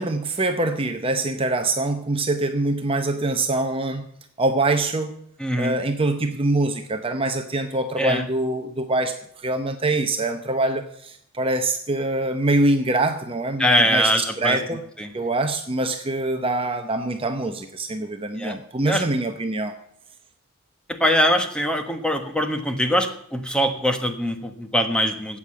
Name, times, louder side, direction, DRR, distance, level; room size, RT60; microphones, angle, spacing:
voice 1, 0.0-4.1 4.4-5.1 5.6-14.8 15.1-19.8, right 2 dB, 25° right, 6 dB, 0.8 m, -24 dB
voice 2, 5.4-5.8 8.0-8.2 13.6-14.6 15.0-15.1 18.4-18.5 18.9-19.0 20.9-25.4, equal, 5° left, 6 dB, 1.2 m, -22 dB
13.0 x 8.6 x 7.6 m, 0.71 s
head